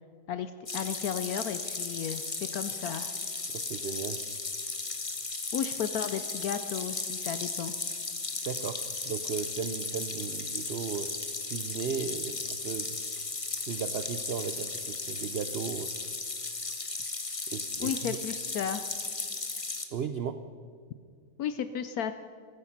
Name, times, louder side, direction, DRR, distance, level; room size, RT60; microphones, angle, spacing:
voice 1, 0.3-2.2 2.5-3.1 5.5-7.7 17.8-18.8 21.4-22.1, left 8 dB, 70° left, 11 dB, 1.0 m, -34 dB
sound 1, 0.7-19.8, left 3 dB, 25° left, 0.9 m, -35 dB
voice 2, 3.5-4.2 8.4-11.1 11.5-13.0 13.7-15.9 17.5-18.2 19.9-20.4, right 7 dB, 80° right, 10 dB, 0.5 m, -36 dB
14.5 x 13.5 x 5.8 m, 2.1 s
omnidirectional pair, 1.8 m